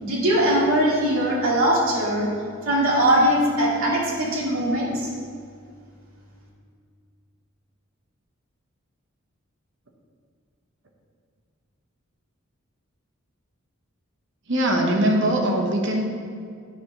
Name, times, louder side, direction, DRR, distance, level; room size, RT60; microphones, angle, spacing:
voice 1, 0.0-2.3 2.6-5.1, right 1 dB, 80° right, -5 dB, 2.3 m, -21 dB
voice 2, 14.5-16.1, right 1 dB, 60° right, 1 dB, 1.2 m, -21 dB
9.3 x 4.9 x 5.9 m, 2.2 s
head